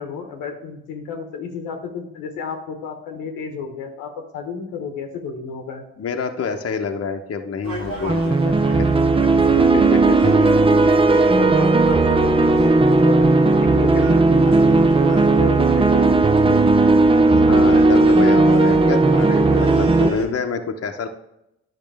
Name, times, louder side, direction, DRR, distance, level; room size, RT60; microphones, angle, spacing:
voice 1, 0.0-5.8 11.3-13.3 13.6-16.6, left 5 dB, 85° left, 4 dB, 1.1 m, -32 dB
voice 2, 6.0-8.9 9.5-10.3 10.7-11.0 17.4-21.1, left 5 dB, 45° left, 4 dB, 0.9 m, -27 dB
Gull seagull, 7.6-20.3, right 1 dB, 85° right, 1.6 m, -34 dB
sound 1, 8.1-20.1, right 3 dB, 15° right, 0.6 m, -15 dB
10.5 x 5.9 x 3.4 m, 0.83 s
hypercardioid pair, 45°, 32 cm